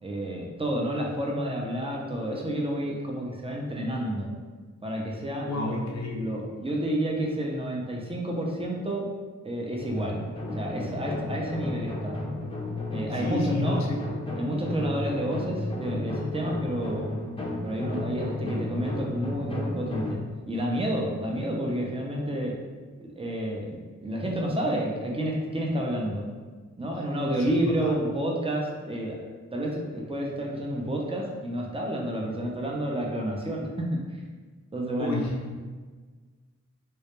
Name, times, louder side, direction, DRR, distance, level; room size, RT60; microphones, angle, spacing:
voice 1, 0.0-4.3 4.8-5.8 6.1-9.1 9.4-10.2 10.5-12.2 12.9-13.8 14.4-17.1 17.6-20.2 20.5-22.6 23.0-26.3 26.8-29.2 29.5-34.2 34.7-35.2, right 1 dB, 20° right, -1 dB, 0.6 m, -30 dB
voice 2, 5.5-6.3 13.1-14.0 27.4-27.9 35.0-35.5, left 1 dB, 65° left, 0 dB, 0.5 m, -30 dB
sound 1, 9.8-20.2, left 2 dB, 20° left, 0.6 m, -33 dB
2.3 x 2.1 x 3.0 m, 1.4 s
cardioid pair, 45°, 30 cm